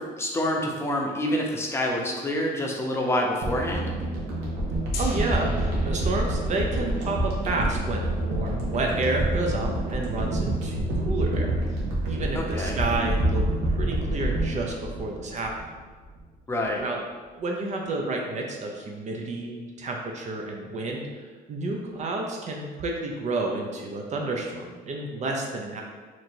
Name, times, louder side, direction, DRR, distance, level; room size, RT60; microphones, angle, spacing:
voice 1, 0.0-3.9 12.3-12.8 16.5-16.8, left 1 dB, 15° left, 0 dB, 0.7 m, -27 dB
sound 1, 3.4-15.7 16.0-16.2, right 1 dB, 85° right, 1.0 m, -27 dB
Gong, 4.9-10.8, left 4 dB, 65° left, 0.6 m, -45 dB
voice 2, 5.0-11.5 12.0-15.7 16.8-17.0 17.4-25.8, right 2 dB, 45° right, 0 dB, 0.6 m, -30 dB
3.0 x 2.6 x 4.4 m, 1.4 s
cardioid pair, 110°, 17 cm